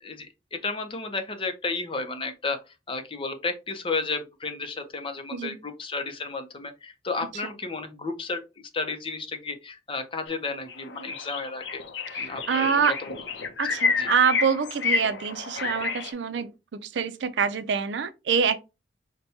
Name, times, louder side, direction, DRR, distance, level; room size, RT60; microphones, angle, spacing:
voice 1, 0.0-2.6 2.9-8.4 8.7-11.8 12.2-13.1 14.0-14.1 15.5-15.7, left 3 dB, 30° left, 0.6 m, -32 dB
sound 1, 10.3-10.4 10.7-16.1, left 5 dB, 85° left, 0.6 m, -30 dB
voice 2, 12.1-13.0 13.6-18.6, right 6 dB, 75° right, 0.4 m, -26 dB
5.6 x 2.2 x 2.7 m
head